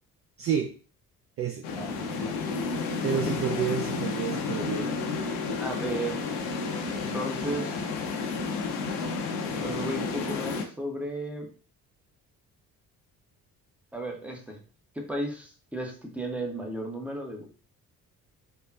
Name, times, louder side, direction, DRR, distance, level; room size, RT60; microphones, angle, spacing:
voice 1, 0.4-0.7 1.4-1.6 3.0-4.9, right 7 dB, 35° right, 3 dB, 0.4 m, -29 dB
sound 1, 1.6-10.7, left 4 dB, 60° left, 0.7 m, -31 dB
voice 2, 1.8-2.4 5.6-6.2 7.0-7.9 9.5-11.5 13.9-14.6 14.9-17.5, right 1 dB, 5° right, 1 dB, 0.8 m, -34 dB
3.5 x 2.3 x 2.3 m, 0.39 s
figure-of-eight pair, 45°, 44 cm